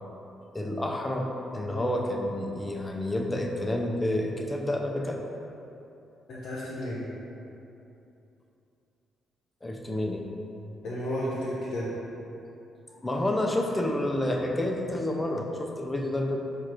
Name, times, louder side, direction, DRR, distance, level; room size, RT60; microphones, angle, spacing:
voice 1, 0.5-1.3 1.5-5.2 9.6-10.3 13.0-16.4, left 1 dB, 15° left, 1 dB, 0.5 m, -29 dB
voice 2, 6.3-7.0 10.8-11.9, equal, 75° left, -9 dB, 0.7 m, -32 dB
4.5 x 2.5 x 4.4 m, 2.8 s
cardioid pair, 90°, 0 cm